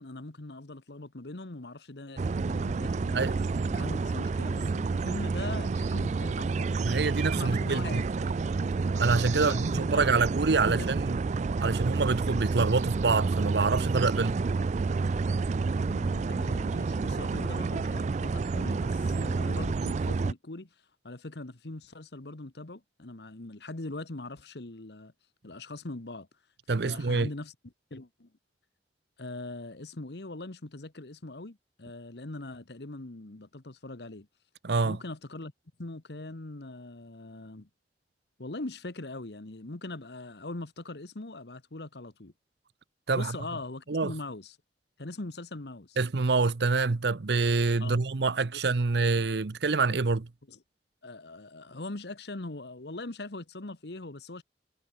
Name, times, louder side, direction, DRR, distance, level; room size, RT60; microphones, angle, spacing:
voice 1, 0.0-3.3 3.7-6.8 7.3-8.4 9.3-10.1 10.6-10.9 15.8-20.7 21.0-25.1 25.4-26.3 26.8-27.5 27.9-28.3 29.2-34.3 34.8-35.5 35.8-37.7 38.4-42.3 43.1-44.6 45.0-46.0 47.8-48.0 50.5-50.6 51.0-54.4, left 2 dB, 70° left, 1.4 m, -41 dB
sound 1, 2.2-20.3, right 4 dB, 40° right, 0.4 m, -29 dB
voice 2, 3.1-3.7 6.8-8.0 8.9-11.2 11.6-14.5 26.7-27.3 34.6-35.0 43.1-43.4 43.9-44.1 46.0-50.3, right 4 dB, 70° right, 0.7 m, -26 dB
head